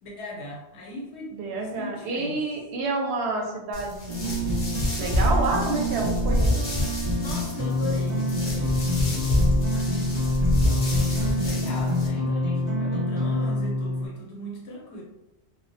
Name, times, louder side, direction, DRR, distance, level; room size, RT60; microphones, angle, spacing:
voice 1, 0.0-2.4 7.1-15.0, left 1 dB, 80° left, -2 dB, 1.0 m, -39 dB
voice 2, 1.3-4.6 5.0-6.7, right 3 dB, 80° right, 0 dB, 0.8 m, -29 dB
sound 1, 3.7-12.1, left 1 dB, 45° left, 0.6 m, -27 dB
sound 2, 4.1-14.1, left 1 dB, 45° right, 0.8 m, -27 dB
2.3 x 2.1 x 2.6 m, 0.94 s
omnidirectional pair, 1.1 m